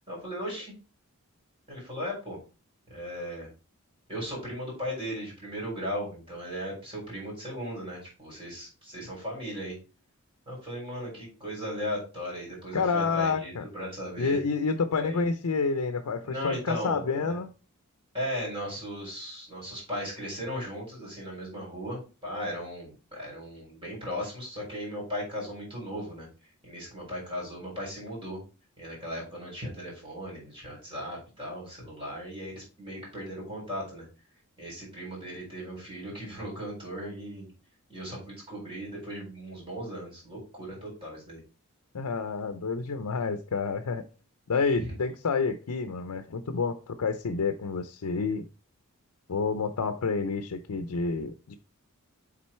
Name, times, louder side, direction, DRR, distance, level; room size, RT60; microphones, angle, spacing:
voice 1, 0.1-0.7 1.7-2.4 2.9-3.5 4.1-9.7 10.5-14.4 14.9-15.2 16.2-17.4 18.1-26.3 26.6-28.4 28.8-34.1 34.6-37.5 37.9-41.4 44.8-44.9, equal, 25° right, 4.2 m, -37 dB
voice 2, 12.7-13.7 14.2-17.5 41.9-44.0 44.5-48.5 49.3-51.6, left 4 dB, 85° left, 0.5 m, -29 dB
7.5 x 3.9 x 4.3 m
head